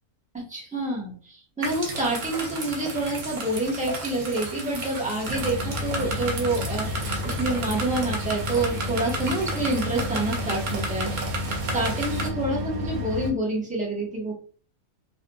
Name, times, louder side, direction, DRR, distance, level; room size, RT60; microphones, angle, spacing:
voice 1, 0.3-11.1 11.7-14.3, right 2 dB, 5° right, -4 dB, 0.7 m, -28 dB
sound 1, 1.6-12.3, right 2 dB, 55° right, 0.5 m, -33 dB
sound 2, 5.2-13.3, left 2 dB, 75° right, 1.0 m, -31 dB
4.0 x 2.4 x 2.2 m, 0.41 s
omnidirectional pair, 1.6 m